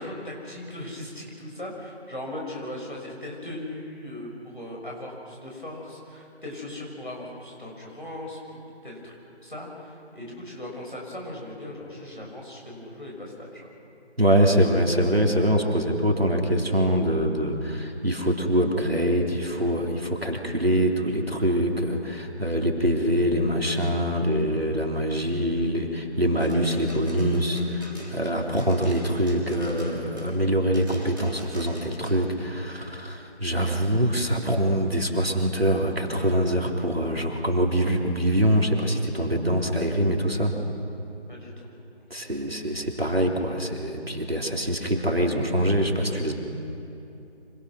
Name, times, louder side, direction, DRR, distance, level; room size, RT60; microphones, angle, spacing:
voice 1, 0.0-9.1 9.4-13.7 41.3-41.7, left 1 dB, 45° left, -2 dB, 6.6 m, -38 dB
voice 2, 14.2-40.6 42.1-46.3, equal, 60° right, 1 dB, 3.4 m, -24 dB
sound 1, 26.4-30.4 30.7-32.2, right 1 dB, 20° right, 3.9 m, -42 dB
27.5 x 26.0 x 6.3 m, 2.9 s
figure-of-eight pair, 180°, 34 cm